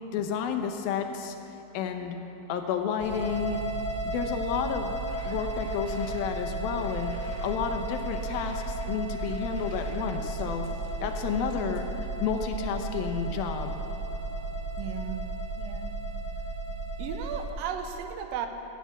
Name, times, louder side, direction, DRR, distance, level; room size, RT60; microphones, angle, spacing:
voice 1, 0.1-1.4 1.7-2.2 2.5-3.6 4.0-4.9 5.3-7.1 7.4-10.7 11.0-11.8 12.2-13.8, left 7 dB, 80° left, 5 dB, 2.7 m, -31 dB
sound 1, 3.0-17.5, right 2 dB, 15° right, 3.1 m, -34 dB
sound 2, 5.1-11.8, left 2 dB, 60° left, 2.2 m, -50 dB
voice 2, 14.8-15.3 15.6-15.9 17.0-18.5, right 7 dB, 80° right, 6 dB, 2.5 m, -35 dB
16.0 x 7.5 x 8.5 m, 3.0 s
omnidirectional pair, 4.2 m